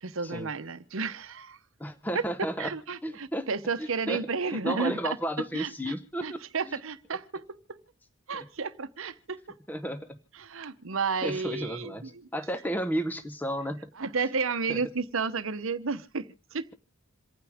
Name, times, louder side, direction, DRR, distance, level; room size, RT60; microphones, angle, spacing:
voice 1, 0.0-1.6 2.6-5.2 5.5-5.9 6.2-7.8 8.3-9.6 10.4-11.9 14.0-16.6, right 4 dB, 70° right, 0.9 m, -32 dB
voice 2, 1.8-2.7 3.0-3.5 3.8-6.4 6.7-6.8 8.3-8.5 9.7-10.2 11.2-13.9 14.7-14.8, equal, 10° left, 0.8 m, -33 dB
27.5 x 9.4 x 3.5 m
head